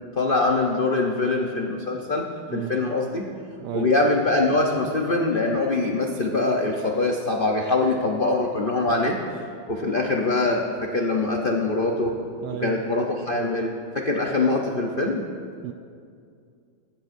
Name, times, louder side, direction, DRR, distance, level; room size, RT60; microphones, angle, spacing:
voice 1, 0.1-3.2 3.7-12.1 12.6-15.2, left 2 dB, 60° left, 0 dB, 0.5 m, -23 dB
voice 2, 2.5-2.8 3.6-3.9 12.4-12.8 15.6-15.7, right 11 dB, 80° right, 5 dB, 0.9 m, -32 dB
19.0 x 15.5 x 2.7 m, 2.3 s
omnidirectional pair, 2.3 m